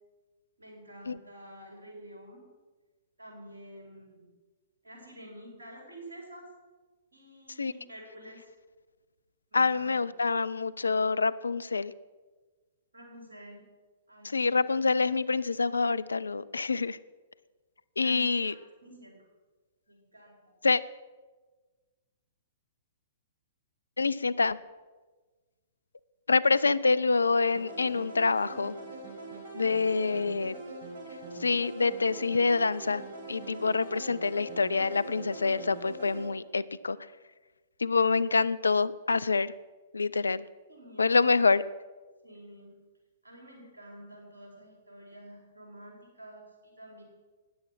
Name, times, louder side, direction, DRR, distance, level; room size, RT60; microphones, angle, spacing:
voice 1, 0.6-2.5 3.2-4.3 4.8-6.5 7.1-8.5 9.5-10.1 12.9-13.7 14.1-14.6 18.0-18.5 18.8-19.3 19.9-20.5 29.7-30.2 40.7-41.3 42.2-42.8 43.2-47.0, right 1 dB, 75° right, 0 dB, 4.6 m, -49 dB
voice 2, 9.5-11.9 14.3-17.0 18.0-18.5 20.6-20.8 24.0-24.6 26.3-28.8 29.5-30.5 31.4-33.0 33.3-37.0 37.8-39.5 39.9-40.4 41.0-41.6, left 4 dB, 80° left, 18 dB, 0.4 m, -26 dB
sound 1, 27.5-36.3, right 2 dB, 60° right, 5.3 m, -43 dB
13.5 x 9.6 x 6.0 m, 1.3 s
figure-of-eight pair, 115°, 0 cm